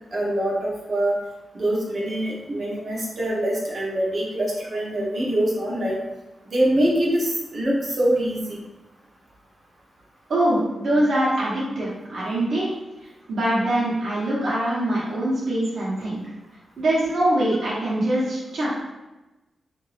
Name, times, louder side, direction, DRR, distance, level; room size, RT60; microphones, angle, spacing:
voice 1, 0.1-1.1 1.5-6.0 6.5-8.6, right 1 dB, 50° right, -4 dB, 0.8 m, -24 dB
voice 2, 10.3-12.7 13.3-16.2 16.8-18.8, right 1 dB, 70° right, -7 dB, 1.0 m, -23 dB
2.8 x 2.6 x 3.2 m, 1.0 s
wide cardioid pair, 120°, 0 cm